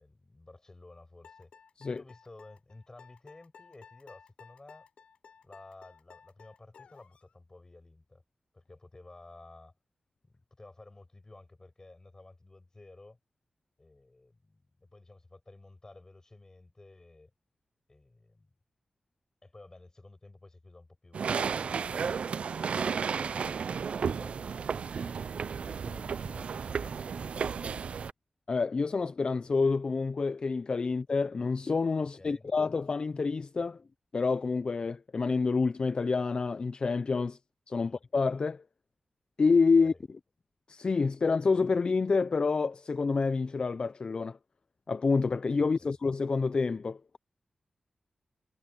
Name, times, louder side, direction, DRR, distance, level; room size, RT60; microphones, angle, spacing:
voice 1, 0.0-1.5 1.9-4.9 5.4-8.2 8.5-9.7 10.2-13.2 13.8-17.3 17.9-18.5 19.4-22.3 22.7-27.8 32.2-32.5 37.8-38.0 39.7-40.0 45.8-45.9, left 2 dB, 30° left, 6.0 m, -53 dB
sound 1, 1.2-7.3, left 6 dB, 85° left, 7.9 m, -56 dB
sound 2, 21.1-28.1, right 6 dB, 75° right, 0.4 m, -33 dB
voice 2, 28.5-33.8 34.1-37.4 37.7-38.6 39.4-39.9 40.7-44.4 44.9-47.2, left 4 dB, 50° left, 0.6 m, -28 dB
cardioid pair, 70°, 2 cm